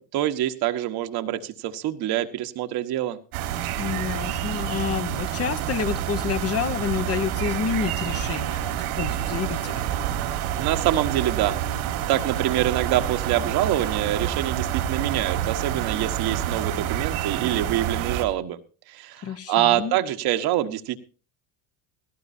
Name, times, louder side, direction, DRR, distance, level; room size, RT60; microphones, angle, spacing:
voice 1, 0.0-3.2 10.6-18.6 18.9-21.0, right 13 dB, 60° right, 7 dB, 1.5 m, -25 dB
sound 1, 3.3-18.2, right 11 dB, 90° right, 3.4 m, -28 dB
voice 2, 3.8-9.9 19.2-20.0, left 8 dB, 35° left, 10 dB, 1.1 m, -29 dB
17.0 x 17.0 x 2.7 m, 0.36 s
supercardioid pair, 115°, 43 cm